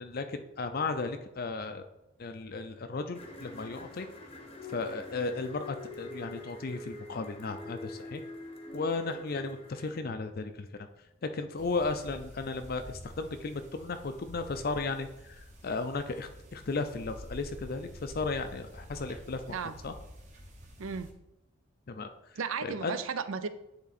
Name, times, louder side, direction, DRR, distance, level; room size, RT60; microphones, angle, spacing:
voice 1, 0.0-1.8 2.2-4.1 4.7-8.2 8.7-10.9 11.2-19.6 19.8-19.9 21.9-23.0, left 3 dB, 45° left, 8 dB, 0.4 m, -35 dB
sound 1, 3.1-10.0, left 2 dB, 25° left, 0.8 m, -45 dB
sound 2, 11.5-21.1, equal, 35° right, 1.1 m, -49 dB
voice 2, 20.8-21.1 22.4-23.5, right 6 dB, 65° right, 12 dB, 0.5 m, -34 dB
9.7 x 3.7 x 4.1 m, 0.90 s
head